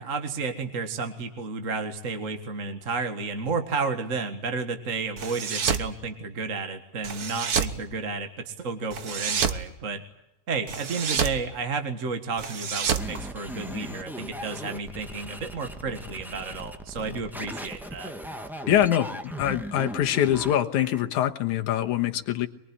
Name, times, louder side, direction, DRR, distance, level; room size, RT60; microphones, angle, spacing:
voice 1, 0.0-10.0 10.5-18.1, right 4 dB, 30° right, 6 dB, 1.6 m, -32 dB
sound 1, 5.2-5.9 7.0-7.8 8.9-9.6 10.7-11.4 12.4-13.9, right 6 dB, 55° right, 1.0 m, -28 dB
sound 2, 13.0-21.0, equal, ahead, 0.7 m, -38 dB
voice 2, 18.7-22.5, left 11 dB, 80° left, 6 dB, 2.7 m, -24 dB
23.5 x 23.0 x 9.9 m, 0.87 s
omnidirectional pair, 3.4 m